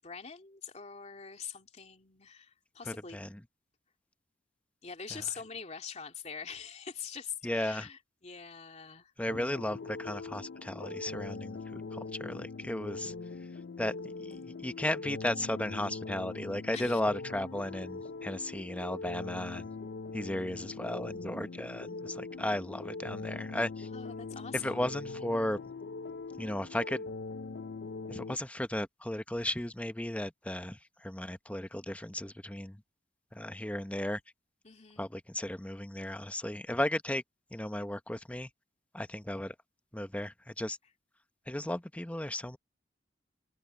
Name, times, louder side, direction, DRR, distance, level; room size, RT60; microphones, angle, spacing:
voice 1, 0.0-3.2 4.8-9.1 9.4-9.5 16.7-17.0 23.9-24.9 34.6-35.1, left 6 dB, 40° left, 2.5 m, -43 dB
voice 2, 2.9-3.4 5.1-5.2 7.4-7.9 9.2-13.1 13.8-19.7 20.1-23.9 24.5-25.6 26.4-27.1 28.1-32.8 33.3-34.2 35.0-37.2 37.5-38.5 38.9-39.5 39.9-40.8 41.5-42.6, left 1 dB, 10° left, 0.9 m, -35 dB
sound 1, 9.3-28.4, left 3 dB, 80° left, 0.5 m, -42 dB
open air
head